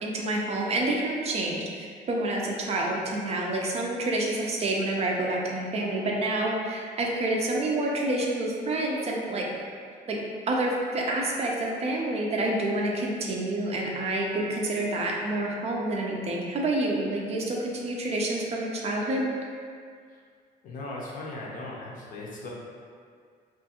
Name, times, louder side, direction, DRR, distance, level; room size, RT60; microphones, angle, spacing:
voice 1, 0.0-9.5 10.1-10.2 10.5-19.3, right 2 dB, 40° right, -2 dB, 0.4 m, -28 dB
voice 2, 20.6-22.5, left 2 dB, 55° left, -4 dB, 0.6 m, -38 dB
2.4 x 2.3 x 2.8 m, 2.1 s
cardioid pair, 110°, 17 cm